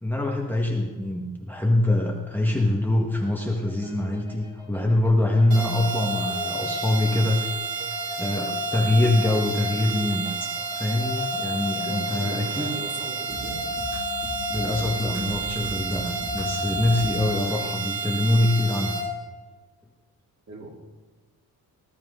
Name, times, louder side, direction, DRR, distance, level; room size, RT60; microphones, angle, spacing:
voice 1, 0.0-7.5 8.2-10.3 10.8-12.7 14.5-19.0, left 1 dB, 5° left, -1 dB, 1.7 m, -24 dB
sound 1, 3.5-17.2, left 1 dB, 10° right, 2.3 m, -42 dB
sound 2, 5.5-19.0, right 2 dB, 75° right, 4.8 m, -30 dB
voice 2, 11.8-13.6 20.5-20.7, right 2 dB, 45° right, -3 dB, 4.3 m, -38 dB
20.0 x 12.5 x 4.0 m, 1.3 s
cardioid pair, 125°, 37 cm